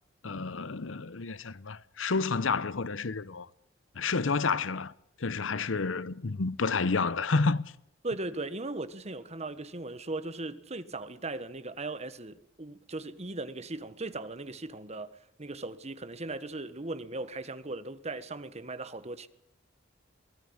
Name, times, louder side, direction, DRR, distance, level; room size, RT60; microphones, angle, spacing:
voice 1, 0.2-3.5 4.0-4.9 5.2-7.6, left 4 dB, 80° left, 0.8 m, -30 dB
voice 2, 8.0-19.3, right 2 dB, 35° right, 1.4 m, -38 dB
23.5 x 18.5 x 8.8 m
head